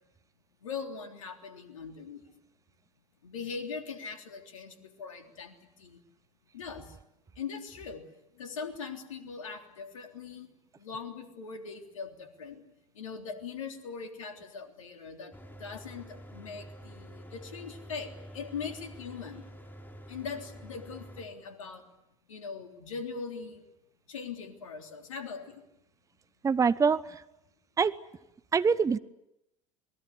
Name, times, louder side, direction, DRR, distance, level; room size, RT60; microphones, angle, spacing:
voice 1, 0.6-2.2 3.2-6.0 6.5-7.0 7.4-8.1 8.4-10.5 10.8-12.6 13.0-15.3 15.6-19.5 20.1-21.8 22.3-23.6 24.1-25.6, left 5 dB, 75° left, 5 dB, 3.5 m, -41 dB
Mechanical fan, 15.3-21.3, equal, 10° left, 5.0 m, -48 dB
voice 2, 26.4-27.2 27.8-27.9 28.5-29.0, right 5 dB, 20° right, 17 dB, 0.9 m, -24 dB
28.5 x 21.0 x 8.3 m, 0.86 s
figure-of-eight pair, 70°, 17 cm